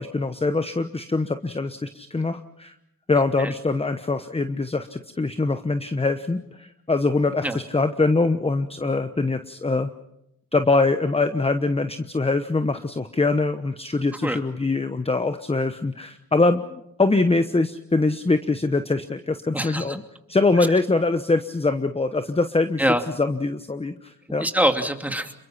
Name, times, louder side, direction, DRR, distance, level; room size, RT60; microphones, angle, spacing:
voice 1, 0.0-2.7 3.1-9.9 10.5-20.0 20.3-22.8 23.2-24.5, left 3 dB, 15° left, 10 dB, 1.1 m, -23 dB
voice 2, 19.5-20.0 22.8-23.0 24.4-25.3, right 1 dB, 5° right, 5 dB, 2.6 m, -24 dB
27.5 x 22.5 x 5.8 m, 0.81 s
cardioid pair, 75°, 34 cm